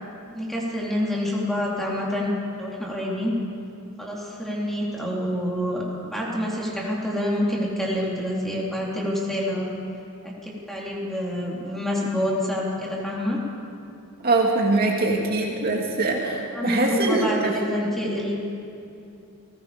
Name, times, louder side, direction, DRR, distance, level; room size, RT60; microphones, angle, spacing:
voice 1, 0.3-3.3 4.0-9.7 10.2-13.4 16.5-18.3, left 1 dB, ahead, -5 dB, 3.6 m, -27 dB
voice 2, 14.2-17.6, right 2 dB, 45° right, -1 dB, 2.3 m, -23 dB
30.0 x 20.0 x 5.2 m, 2.7 s
head